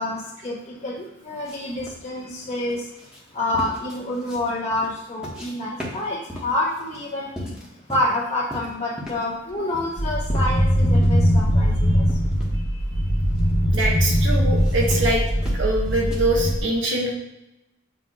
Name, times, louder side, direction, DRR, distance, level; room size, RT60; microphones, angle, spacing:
voice 1, 0.0-2.8 3.3-7.3 7.9-12.1, left 1 dB, 40° left, -7 dB, 2.3 m, -28 dB
sound 1, 1.4-5.5 5.8-8.2 8.5-9.3 9.7-11.2 11.6-11.7 12.3-12.6 13.1-13.4 13.8-14.0 14.6-16.2, left 1 dB, 5° right, 1.4 m, -37 dB
sound 2, 10.0-16.6, equal, 65° left, 1.5 m, -20 dB
voice 2, 13.7-15.2 15.5-17.1, right 1 dB, 75° right, -1 dB, 1.2 m, -23 dB
7.4 x 2.7 x 5.8 m, 0.93 s
head